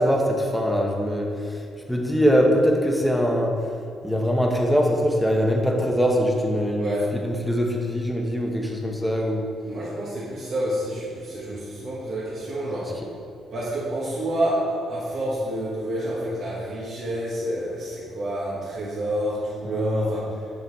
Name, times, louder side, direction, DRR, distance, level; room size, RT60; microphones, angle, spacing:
voice 1, 0.0-1.6 1.9-3.6 4.0-9.5 19.6-20.1, equal, ahead, 0 dB, 0.9 m, -22 dB
voice 2, 6.8-7.1 9.7-13.0 13.5-20.5, right 1 dB, 60° right, -8 dB, 1.5 m, -28 dB
6.9 x 5.0 x 4.2 m, 2.4 s
cardioid pair, 90°, 0 cm